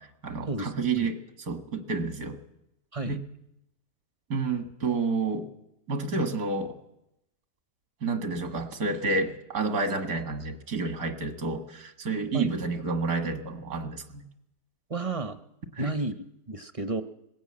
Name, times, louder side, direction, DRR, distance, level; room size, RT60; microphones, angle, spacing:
voice 1, 0.0-2.4 3.0-3.2 4.3-5.5 5.9-6.8 8.0-14.2 15.7-15.9, right 3 dB, 75° right, 7 dB, 2.1 m, -30 dB
voice 2, 14.9-15.4 15.8-16.1 16.5-17.0, right 3 dB, 30° right, 10 dB, 0.6 m, -31 dB
20.5 x 16.5 x 8.6 m, 0.85 s
omnidirectional pair, 1.6 m